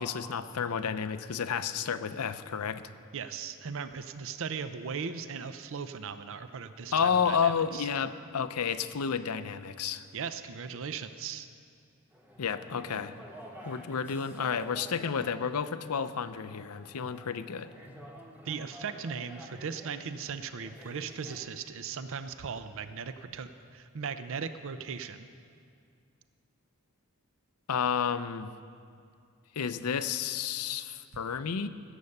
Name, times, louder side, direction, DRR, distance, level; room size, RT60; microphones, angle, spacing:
voice 1, 0.0-2.8 6.9-10.0 12.4-13.1 13.6-17.7 27.7-28.5 29.6-31.7, left 7 dB, 85° left, 12 dB, 0.6 m, -31 dB
voice 2, 3.1-7.9 10.1-11.5 18.4-25.3, right 6 dB, 60° right, 11 dB, 0.5 m, -38 dB
sound 1, 12.1-21.4, right 1 dB, 10° right, 1.1 m, -50 dB
16.0 x 8.2 x 6.6 m, 2.3 s
head